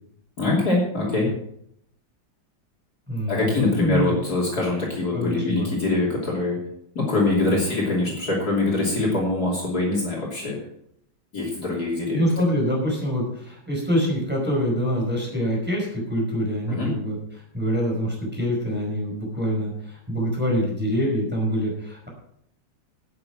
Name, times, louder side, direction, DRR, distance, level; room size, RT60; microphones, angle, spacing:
voice 1, 0.4-1.3 3.3-6.6 7.0-10.6 11.3-12.3 16.7-16.9, left 2 dB, 50° left, -4 dB, 3.5 m, -23 dB
voice 2, 3.1-4.1 5.1-5.7 12.1-22.1, equal, 5° right, -3 dB, 4.7 m, -25 dB
11.5 x 9.4 x 5.9 m, 0.73 s
omnidirectional pair, 2.1 m